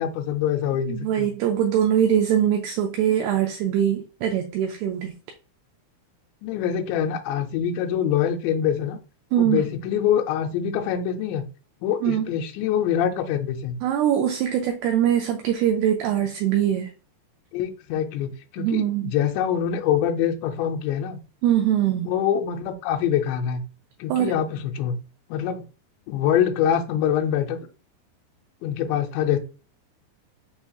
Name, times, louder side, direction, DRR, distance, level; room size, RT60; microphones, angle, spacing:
voice 1, 0.0-1.3 6.4-9.0 9.4-11.4 11.8-13.8 17.5-21.2 22.1-23.6 24.0-25.0 25.3-25.6 26.1-27.7 28.6-29.4, left 9 dB, 85° left, 2.9 m, -24 dB
voice 2, 0.9-5.1 9.3-9.7 12.0-12.3 13.8-16.9 18.6-19.1 21.4-22.1 24.1-24.3, right 10 dB, 85° right, 2.3 m, -22 dB
7.0 x 2.8 x 2.3 m
omnidirectional pair, 5.1 m